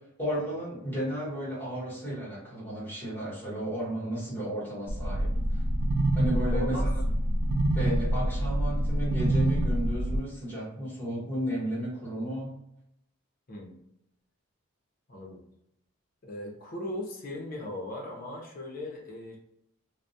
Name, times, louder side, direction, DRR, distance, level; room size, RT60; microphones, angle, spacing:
voice 1, 0.2-5.6 6.1-7.0 7.7-12.6, equal, 10° left, -7 dB, 1.0 m, -33 dB
sound 1, 4.9-10.2, right 1 dB, 85° right, 0.4 m, -26 dB
voice 2, 6.5-6.9 13.5-13.8 15.1-15.4 16.2-19.4, left 1 dB, 40° left, -1 dB, 0.6 m, -38 dB
2.3 x 2.1 x 2.6 m, 0.79 s
head